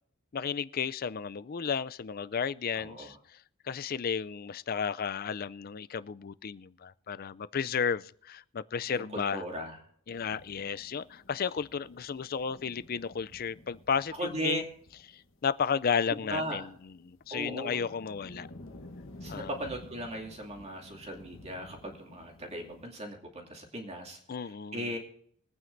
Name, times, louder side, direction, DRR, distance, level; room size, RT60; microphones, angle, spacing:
voice 1, 0.3-3.2 3.6-9.4 10.1-14.6 15.1-16.7 17.0-18.5 19.3-19.5 24.3-24.9, left 6 dB, 40° left, 0.4 m, -33 dB
voice 2, 2.7-3.1 9.0-9.8 14.1-14.6 16.1-16.7 17.3-17.8 19.2-25.0, right 1 dB, 30° right, 2.5 m, -38 dB
sound 1, 10.1-22.9, left 1 dB, 60° left, 1.3 m, -52 dB
23.0 x 9.2 x 2.6 m
head